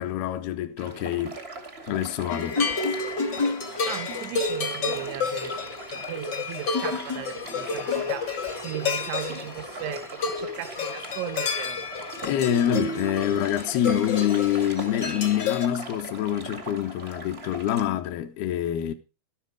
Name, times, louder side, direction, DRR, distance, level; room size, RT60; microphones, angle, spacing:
voice 1, 0.0-1.4 1.9-2.6 12.2-18.9, left 11 dB, 75° left, 2.4 m, -26 dB
sound 1, 0.8-17.8, right 2 dB, 55° right, 0.6 m, -41 dB
sound 2, 2.3-15.7, left 4 dB, 55° left, 1.1 m, -30 dB
voice 2, 3.9-8.4 8.6-11.8, right 14 dB, 80° right, 3.2 m, -37 dB
12.5 x 12.5 x 4.7 m
omnidirectional pair, 5.5 m